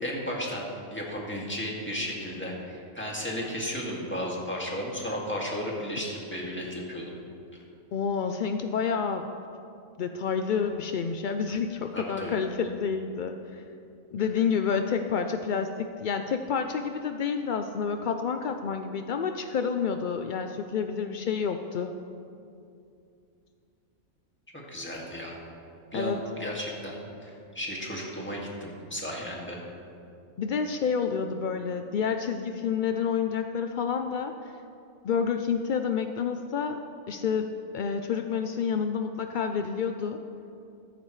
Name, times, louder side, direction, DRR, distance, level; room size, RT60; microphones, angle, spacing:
voice 1, 0.0-7.1 12.0-12.4 14.2-14.3 24.5-25.4 25.9-27.0 27.2-29.6, equal, 10° left, -4 dB, 2.0 m, -34 dB
voice 2, 7.9-9.3 10.0-13.6 14.1-21.9 25.9-26.2 30.4-34.5 35.0-40.2, left 6 dB, 70° left, 6 dB, 0.4 m, -29 dB
14.5 x 14.0 x 3.2 m, 2.5 s
omnidirectional pair, 1.4 m